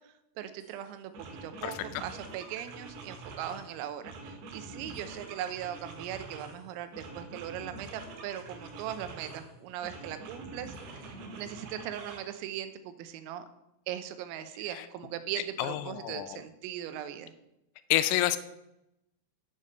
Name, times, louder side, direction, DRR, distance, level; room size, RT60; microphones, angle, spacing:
voice 1, 0.1-13.5 13.9-17.3, right 11 dB, 90° right, 10 dB, 3.5 m, -39 dB
sound 1, 0.6-0.8 1.1-3.7 4.0-6.6 6.9-9.5 9.8-12.2, right 3 dB, 65° right, 3.7 m, -45 dB
voice 2, 1.6-2.0 14.7-14.9 15.6-16.4 17.9-18.4, left 14 dB, 85° left, 12 dB, 3.1 m, -29 dB
8.2 x 7.3 x 6.6 m, 0.88 s
omnidirectional pair, 5.9 m